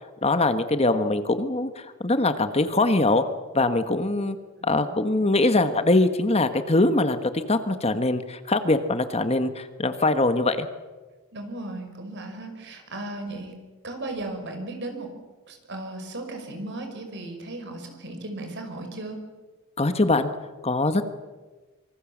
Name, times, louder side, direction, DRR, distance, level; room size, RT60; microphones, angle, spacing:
voice 1, 0.2-3.2 3.5-4.4 4.6-10.7 19.8-20.3 20.6-21.1, left 2 dB, 30° left, 9 dB, 1.4 m, -22 dB
voice 2, 4.6-5.2 11.3-13.5 13.8-15.1 15.5-19.2, right 2 dB, 55° right, 5 dB, 5.6 m, -36 dB
26.0 x 24.5 x 7.4 m, 1.3 s
head